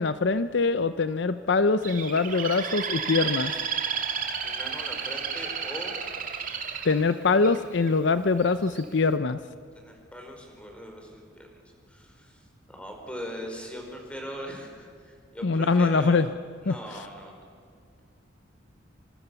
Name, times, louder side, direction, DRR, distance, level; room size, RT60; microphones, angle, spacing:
voice 1, 0.0-3.5 6.8-9.4 15.4-16.3 16.7-16.8, left 4 dB, 60° left, 12 dB, 0.6 m, -23 dB
Bird, 1.8-7.9 8.5-8.8, right 7 dB, 45° right, 2.6 m, -32 dB
voice 2, 4.4-6.0 9.7-11.5 11.9-16.2 16.6-17.4, equal, 5° left, 2 dB, 5.0 m, -40 dB
27.5 x 25.5 x 7.0 m, 2.1 s
head